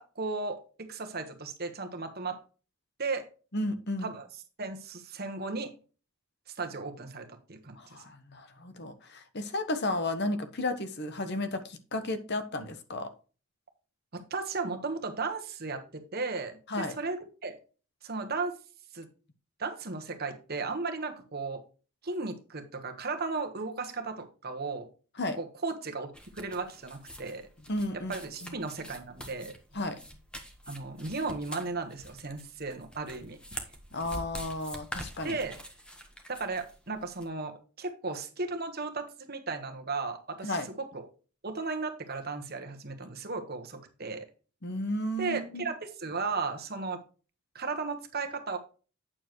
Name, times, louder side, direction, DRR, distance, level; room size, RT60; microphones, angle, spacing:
voice 1, 0.0-2.4 3.0-3.2 4.0-4.3 4.6-5.7 6.5-8.0 14.1-17.6 18.0-18.6 18.9-19.1 19.6-21.6 22.0-24.9 25.4-26.1 26.3-27.5 28.1-29.5 30.7-33.6 35.2-35.6 36.3-41.1 41.4-44.3 45.2-47.0 47.5-48.6, right 3 dB, 45° right, 6 dB, 1.3 m, -35 dB
voice 2, 3.5-4.1 7.8-13.1 16.7-17.0 25.2-25.4 27.7-28.1 28.4-28.5 29.7-30.0 33.9-35.4 40.4-40.7 44.6-45.7, left 1 dB, 50° left, 9 dB, 1.1 m, -33 dB
card fiddling, 26.1-37.3, equal, 5° left, 1.2 m, -45 dB
8.8 x 7.2 x 3.1 m, 0.34 s
head